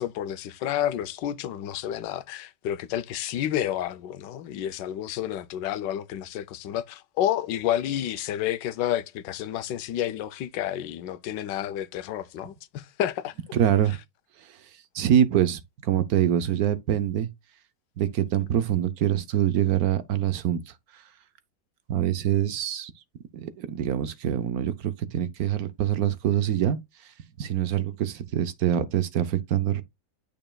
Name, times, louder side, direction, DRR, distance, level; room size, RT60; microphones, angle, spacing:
voice 1, 0.0-13.3, left 11 dB, 90° left, 1.3 m, -30 dB
voice 2, 13.5-14.0 14.4-14.7 14.9-17.3 18.0-21.0 21.9-22.9 23.3-26.8 27.4-29.8, right 10 dB, 70° right, 1.1 m, -25 dB
9.0 x 5.4 x 2.2 m
omnidirectional pair, 1.9 m